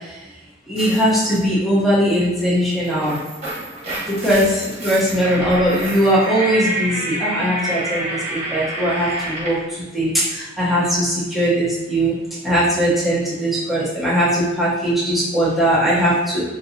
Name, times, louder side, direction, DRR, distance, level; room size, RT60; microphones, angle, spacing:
voice 1, 0.7-3.2 4.1-9.6 9.9-12.1 12.4-16.4, equal, ahead, -10 dB, 0.9 m, -19 dB
sound 1, 0.8-1.4 2.7-9.7, right 1 dB, 35° right, 1.2 m, -28 dB
3.6 x 2.7 x 2.8 m, 1.1 s
head